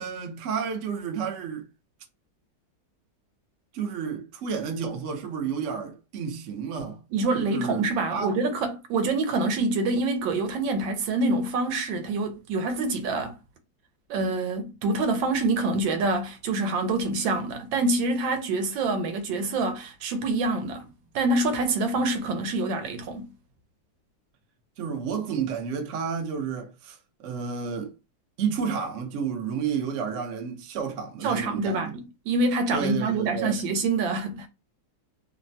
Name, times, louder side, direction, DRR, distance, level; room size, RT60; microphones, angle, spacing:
voice 1, 0.0-1.7 3.7-7.0 7.3-8.4 24.8-27.9 28.4-31.9 32.7-33.6, right 6 dB, 65° right, 0.8 m, -31 dB
voice 2, 7.1-13.3 14.1-20.9 21.1-23.3 31.2-31.9 32.3-34.5, right 2 dB, 80° right, 1.4 m, -26 dB
3.2 x 2.1 x 2.6 m
omnidirectional pair, 2.0 m